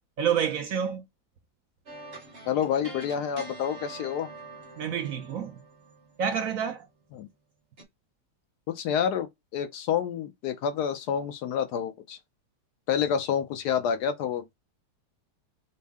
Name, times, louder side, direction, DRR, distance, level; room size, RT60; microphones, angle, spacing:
voice 1, 0.2-1.0 4.8-5.6 6.2-6.9, right 8 dB, 65° right, 0.9 m, -28 dB
sound 1, 1.9-6.9 7.8-7.9, right 2 dB, 40° right, 1.0 m, -45 dB
voice 2, 2.5-4.3 7.1-7.3 8.7-12.2 12.9-14.5, left 8 dB, 75° left, 1.2 m, -28 dB
5.4 x 2.1 x 3.5 m
omnidirectional pair, 1.8 m